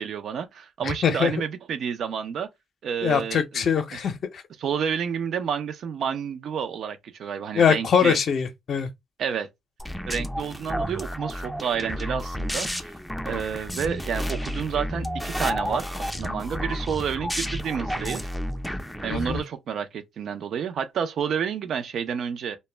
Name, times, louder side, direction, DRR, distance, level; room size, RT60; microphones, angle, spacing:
voice 1, 0.0-2.5 2.8-4.0 4.6-8.2 9.2-9.5 10.1-12.9 13.2-18.3 19.0-22.6, right 7 dB, 65° right, 0.4 m, -30 dB
voice 2, 0.8-1.3 3.0-4.4 7.5-8.9 19.1-19.4, left 7 dB, 60° left, 0.5 m, -23 dB
sound 1, 9.8-19.4, equal, ahead, 0.4 m, -31 dB
2.1 x 2.0 x 3.2 m
cardioid pair, 90°, 0 cm